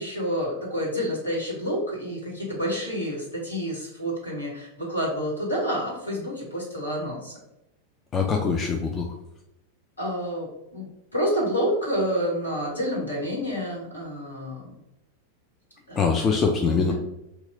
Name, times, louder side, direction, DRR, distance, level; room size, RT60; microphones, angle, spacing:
voice 1, 0.0-7.4 10.0-10.5 10.7-10.9 11.1-14.7 15.9-16.1 16.8-16.9, equal, 85° left, -5 dB, 1.2 m, -28 dB
voice 2, 8.1-9.1 16.0-16.9, left 5 dB, 25° left, 2 dB, 0.3 m, -23 dB
2.9 x 2.2 x 3.8 m, 0.89 s
figure-of-eight pair, 90°, 0 cm